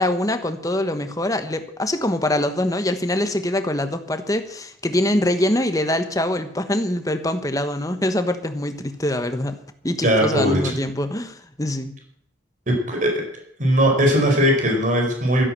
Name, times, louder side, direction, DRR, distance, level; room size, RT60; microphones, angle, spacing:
voice 1, 0.0-9.6 9.8-11.9, left 1 dB, 20° left, 8 dB, 1.3 m, -24 dB
voice 2, 10.0-10.7 12.7-13.2 13.6-15.4, equal, 40° right, 1 dB, 4.7 m, -19 dB
13.0 x 11.0 x 7.6 m, 0.66 s
head